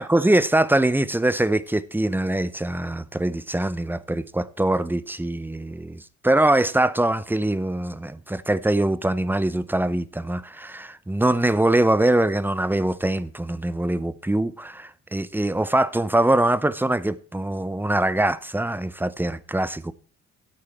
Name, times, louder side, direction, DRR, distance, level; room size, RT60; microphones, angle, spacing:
voice 1, 0.0-19.9, right 1 dB, 5° right, 0.7 m, -23 dB
13.0 x 8.5 x 4.5 m
cardioid pair, 90°, 30 cm